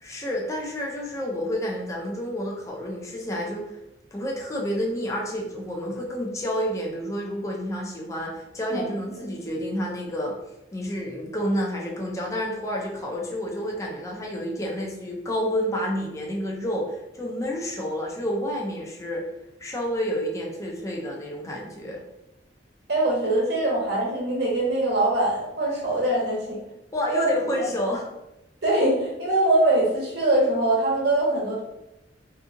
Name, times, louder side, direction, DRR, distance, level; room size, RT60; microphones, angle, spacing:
voice 1, 0.0-3.8 4.1-10.4 10.7-19.3 19.6-22.0 26.9-28.1, equal, 15° left, -1 dB, 0.4 m, -29 dB
voice 2, 22.9-26.6 27.1-27.3 28.6-31.6, right 1 dB, 60° right, -3 dB, 0.9 m, -23 dB
2.6 x 2.5 x 2.5 m, 0.91 s
head